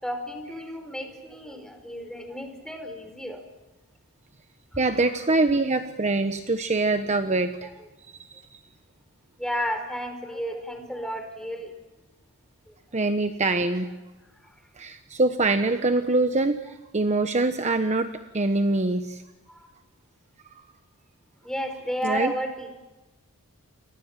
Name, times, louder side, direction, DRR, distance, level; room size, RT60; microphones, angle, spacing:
voice 1, 0.0-3.4 9.4-11.7 12.7-12.8 19.5-19.7 21.4-22.7, equal, 5° left, 5 dB, 5.0 m, -32 dB
voice 2, 4.8-7.7 8.0-8.4 12.9-14.0 14.8-18.1 18.3-19.2 22.0-22.3, right 2 dB, 30° right, 8 dB, 1.1 m, -24 dB
29.5 x 24.5 x 7.5 m, 1.1 s
head